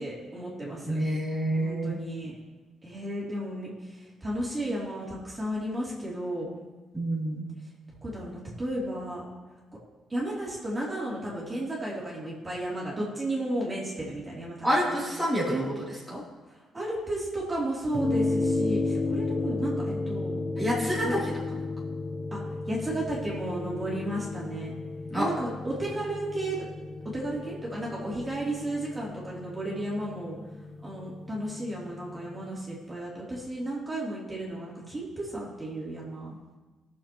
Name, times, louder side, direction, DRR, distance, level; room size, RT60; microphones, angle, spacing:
voice 1, 0.0-1.0 1.5-2.3 2.8-6.5 8.0-9.2 10.1-15.0 16.5-20.3 21.0-21.1 22.3-22.4 22.7-24.7 25.1-26.6 27.1-30.4 30.8-36.4, right 1 dB, 20° right, -6 dB, 3.2 m, -33 dB
voice 2, 0.9-2.0 6.9-7.5 14.6-16.2 20.6-21.2 25.1-25.3, equal, 5° left, -7 dB, 3.2 m, -28 dB
sound 1, 17.9-32.5, left 2 dB, 30° left, 0.8 m, -33 dB
18.0 x 7.2 x 3.1 m, 1.2 s
cardioid pair, 90°, 0 cm